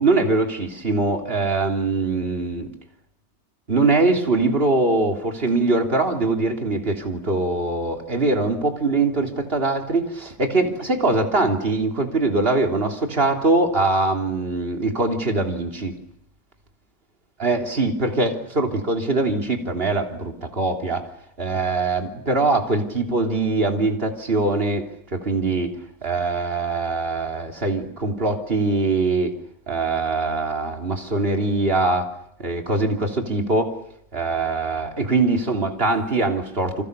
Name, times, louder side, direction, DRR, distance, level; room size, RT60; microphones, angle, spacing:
voice 1, 0.0-2.7 3.7-16.0 17.4-21.0 21.4-24.8 25.1-29.3 29.7-32.1 32.4-33.7 34.1-36.8, right 3 dB, 40° right, 3 dB, 3.5 m, -22 dB
29.5 x 26.5 x 6.8 m, 0.73 s
omnidirectional pair, 1.6 m